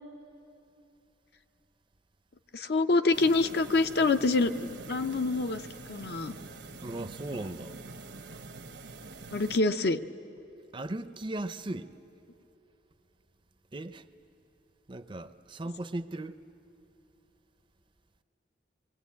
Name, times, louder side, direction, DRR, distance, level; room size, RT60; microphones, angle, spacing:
voice 1, 2.5-5.6 5.9-6.3 9.3-10.0, left 3 dB, 60° left, 0.7 m, -26 dB
sound 1, 3.1-9.6, right 3 dB, 75° right, 1.1 m, -45 dB
voice 2, 6.8-7.8 10.7-11.9 13.7-14.1 14.9-16.4, right 2 dB, 30° right, 0.6 m, -37 dB
26.0 x 21.5 x 8.5 m
head